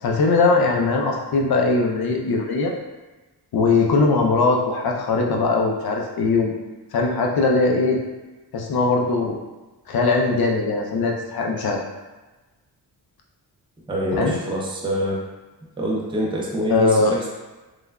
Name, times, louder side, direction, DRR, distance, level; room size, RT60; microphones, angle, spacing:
voice 1, 0.0-2.7 3.5-6.5 6.9-8.0 8.5-9.4 9.9-11.8 14.1-14.4 16.7-17.1, left 3 dB, 55° left, 0 dB, 0.6 m, -20 dB
voice 2, 13.9-15.2 15.8-17.3, equal, 10° right, -4 dB, 0.6 m, -25 dB
3.1 x 2.3 x 2.2 m, 1.2 s
cardioid pair, 60°, 44 cm